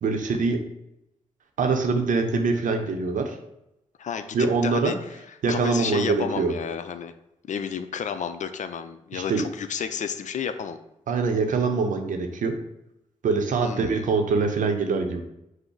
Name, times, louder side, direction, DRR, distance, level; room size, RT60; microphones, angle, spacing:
voice 1, 0.0-0.6 1.6-3.4 4.3-4.9 5.4-6.5 9.1-9.4 11.1-12.6 13.2-15.2, right 4 dB, 75° right, 5 dB, 0.7 m, -24 dB
voice 2, 4.0-5.2 5.5-7.1 7.5-10.8 13.6-14.0, left 7 dB, 65° left, 10 dB, 0.4 m, -31 dB
5.3 x 2.0 x 4.6 m, 0.85 s
supercardioid pair, 45°, 14 cm